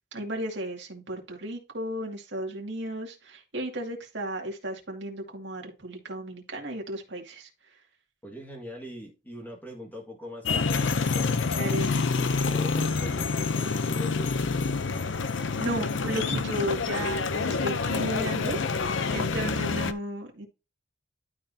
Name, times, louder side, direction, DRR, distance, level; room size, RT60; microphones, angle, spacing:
voice 1, 0.1-7.5 11.5-12.0 15.3-20.5, right 1 dB, 60° right, 2 dB, 2.2 m, -34 dB
voice 2, 8.2-11.7 12.2-14.4 17.8-18.3, equal, 10° left, 0 dB, 1.8 m, -42 dB
sound 1, 10.4-19.9, left 4 dB, 70° left, 0.6 m, -27 dB
12.0 x 4.7 x 2.8 m, 0.28 s
head